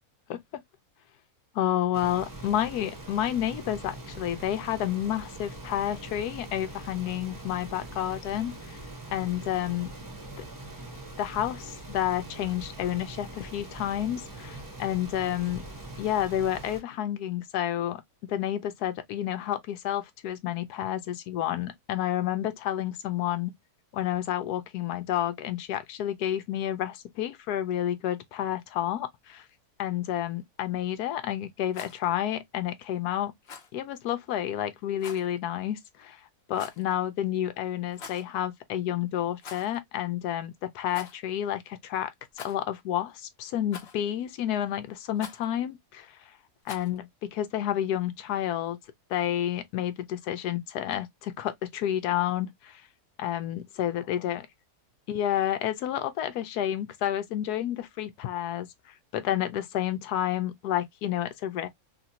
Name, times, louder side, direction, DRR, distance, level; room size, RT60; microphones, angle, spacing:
voice 1, 0.3-0.6 1.5-8.8 9.1-9.9 11.2-15.6 16.0-18.0 18.3-23.5 23.9-29.5 29.8-33.3 33.7-36.2 36.5-42.1 42.4-46.2 46.7-48.8 49.1-52.8 53.2-54.5 55.1-58.7 59.1-61.7, left 11 dB, 80° left, 1.1 m, -30 dB
sound 1, 1.9-16.8, right 2 dB, 15° right, 0.7 m, -42 dB
Rattle, 31.6-32.0 33.4-33.7 35.0-35.3 36.5-36.9 37.9-38.3 39.4-39.8 40.1-40.2 40.9-41.2 42.3-42.8 43.7-44.1 45.2-45.5 46.6-47.0, left 6 dB, 50° left, 0.9 m, -44 dB
3.4 x 2.5 x 2.7 m
omnidirectional pair, 1.6 m